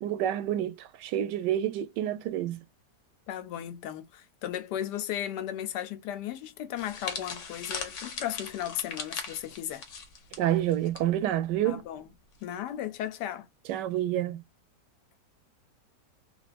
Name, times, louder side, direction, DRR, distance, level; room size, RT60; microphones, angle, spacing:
voice 1, 0.0-2.6 10.4-11.8 13.7-14.4, right 12 dB, 80° right, 1.2 m, -28 dB
voice 2, 3.3-9.8 11.6-12.1 12.4-13.5, left 11 dB, 75° left, 1.2 m, -35 dB
sound 1, 6.8-11.0 11.3-11.5 12.4-12.7, left 5 dB, 55° left, 0.9 m, -39 dB
3.4 x 2.5 x 2.4 m
omnidirectional pair, 1.9 m